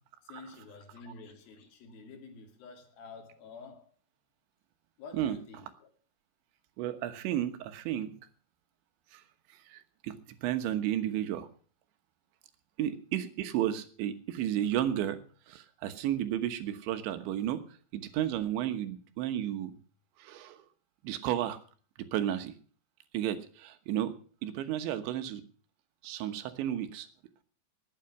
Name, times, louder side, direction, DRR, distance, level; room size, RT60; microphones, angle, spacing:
voice 1, 0.2-3.9 5.0-5.9, left 4 dB, 60° left, 4.1 m, -49 dB
voice 2, 6.8-8.1 9.1-9.2 9.7-10.2 10.4-11.5 12.8-15.2 15.5-17.6 17.9-19.7 20.2-20.6 21.0-21.6 22.1-22.5 23.1-24.1 24.4-25.4 26.0-27.1, right 11 dB, 90° right, 3.6 m, -32 dB
19.5 x 9.1 x 5.9 m
omnidirectional pair, 5.1 m